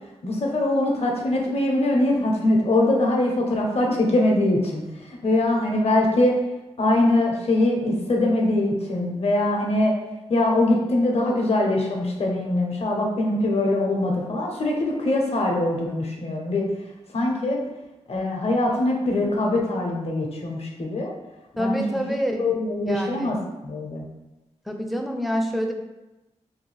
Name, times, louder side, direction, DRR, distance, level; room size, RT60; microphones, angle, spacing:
voice 1, 0.2-6.4 6.8-9.9 10.3-16.7 17.1-17.6 18.1-21.1 21.6-22.0 22.4-23.4 23.6-24.1, left 1 dB, 55° left, -1 dB, 0.7 m, -22 dB
voice 2, 21.6-22.5 22.9-23.3 24.7-25.7, equal, ahead, 2 dB, 0.4 m, -26 dB
2.6 x 2.3 x 3.1 m, 1.0 s
wide cardioid pair, 80°, 12 cm